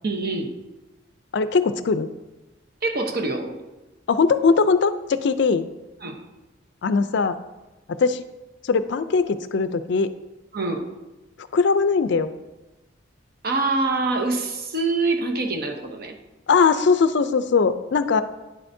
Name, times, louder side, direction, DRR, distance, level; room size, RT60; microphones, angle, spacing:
voice 1, 0.0-0.5 2.8-3.6 6.0-6.2 10.5-10.8 13.4-16.2, right 3 dB, 50° right, 4 dB, 0.9 m, -25 dB
voice 2, 1.3-2.1 4.1-5.7 6.8-7.4 7.9-8.2 8.6-10.1 11.5-12.3 16.5-18.2, left 5 dB, 60° left, 12 dB, 0.4 m, -20 dB
9.7 x 7.7 x 2.7 m, 1.1 s
head